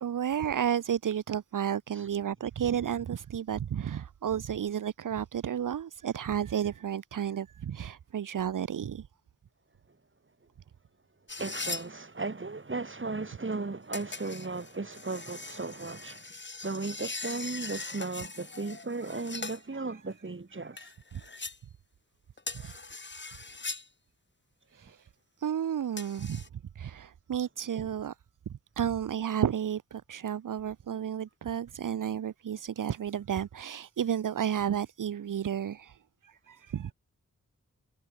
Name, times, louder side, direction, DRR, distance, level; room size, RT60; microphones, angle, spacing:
voice 1, 0.0-9.1 19.7-19.8 21.1-21.2 22.6-22.7 24.7-25.1 25.4-26.4 26.7-28.2 28.5-36.9, right 9 dB, 75° right, 0.9 m, -32 dB
sound 1, 11.3-11.9 13.9-19.6 20.8-21.6 22.4-23.9 26.0-26.5, left 3 dB, 35° left, 2.7 m, -40 dB
voice 2, 11.4-16.3 16.6-20.9 22.6-22.8, right 3 dB, 40° right, 7.5 m, -36 dB
cardioid pair, 65°, 32 cm